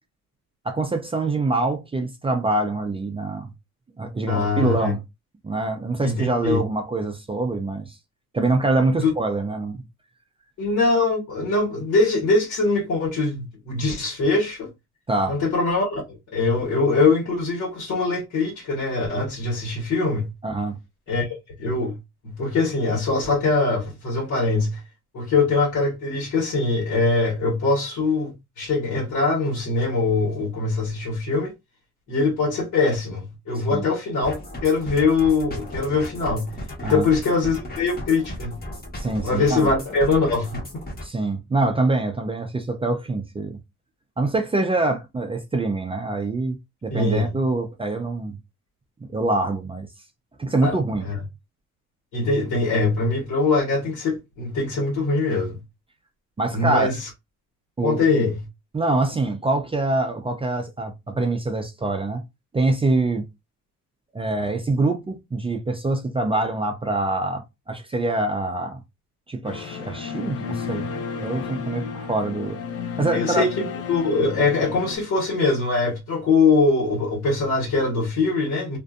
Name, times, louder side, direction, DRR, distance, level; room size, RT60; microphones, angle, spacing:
voice 1, 0.6-3.5 4.0-5.0 5.4-8.0 8.3-9.8 15.1-15.4 20.4-20.8 33.7-33.8 36.8-37.1 38.9-39.7 41.0-43.6 44.2-46.6 46.8-48.4 49.1-49.9 50.4-51.1 56.4-56.9 57.8-58.2 58.7-62.2 62.5-63.2 64.1-68.8 69.3-70.9 71.2-72.6 73.0-73.4, right 2 dB, 20° right, 0.4 m, -24 dB
voice 2, 4.3-4.9 6.0-6.6 9.0-9.1 10.6-14.7 15.3-16.0 16.3-20.3 21.1-22.0 22.2-24.8 25.1-31.5 32.1-36.5 36.8-38.6 39.2-40.6 46.9-47.3 50.6-51.2 52.1-55.6 56.5-57.1 57.8-58.4 73.1-78.8, left 3 dB, 75° left, 1.3 m, -22 dB
sound 1, 34.2-41.1, equal, 30° left, 1.1 m, -35 dB
sound 2, 69.4-75.0, left 6 dB, 50° left, 0.6 m, -32 dB
2.5 x 2.4 x 2.3 m
cardioid pair, 90°, 30 cm